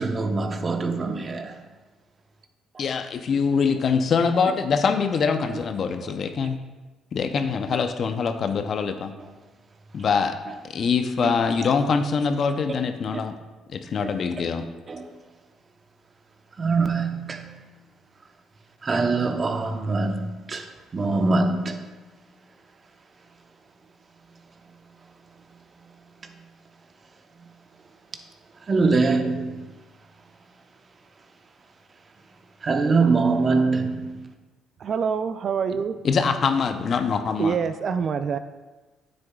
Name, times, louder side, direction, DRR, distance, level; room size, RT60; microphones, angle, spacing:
voice 1, 0.0-1.6 11.2-11.3 14.9-15.1 16.6-17.7 18.8-21.9 25.8-25.9 27.4-27.5 28.6-29.7 32.6-34.3, right 3 dB, 40° right, 0.9 m, -24 dB
voice 2, 2.8-6.6 7.1-9.1 9.9-10.4 10.6-13.3 13.7-14.7 36.0-37.6, left 5 dB, 55° left, 0.6 m, -24 dB
voice 3, 34.8-36.0 37.4-38.4, right 6 dB, 55° right, 0.4 m, -25 dB
9.6 x 7.8 x 2.4 m
supercardioid pair, 70°, 0 cm